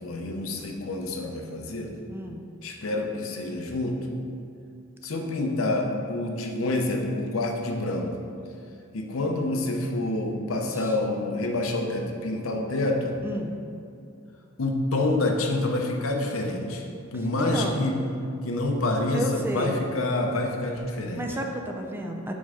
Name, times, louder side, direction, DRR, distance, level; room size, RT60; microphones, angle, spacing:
voice 1, 0.0-1.9 2.6-4.0 5.0-8.2 8.9-13.2 14.6-16.8 17.1-18.0 18.4-21.2, left 2 dB, 80° left, 2 dB, 0.8 m, -27 dB
voice 2, 2.1-2.4 10.7-10.9 13.2-13.6 17.4-17.8 19.1-19.8 21.2-22.3, equal, 10° right, 2 dB, 0.5 m, -32 dB
5.3 x 4.7 x 5.0 m, 2.4 s
head